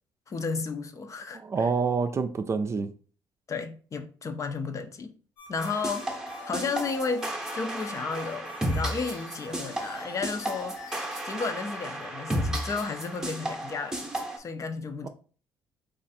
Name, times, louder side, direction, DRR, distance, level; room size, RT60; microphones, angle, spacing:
voice 1, 0.3-1.7 3.5-5.1 5.5-6.1 6.5-15.1, left 4 dB, 40° left, 0.6 m, -33 dB
voice 2, 1.3-2.9 15.0-15.1, right 5 dB, 35° right, 0.4 m, -27 dB
sound 1, 5.4-11.4, left 3 dB, 80° left, 1.3 m, -47 dB
sound 2, 5.6-14.4, right 1 dB, 5° right, 0.8 m, -33 dB
3.2 x 2.5 x 4.1 m
cardioid pair, 85°, 8 cm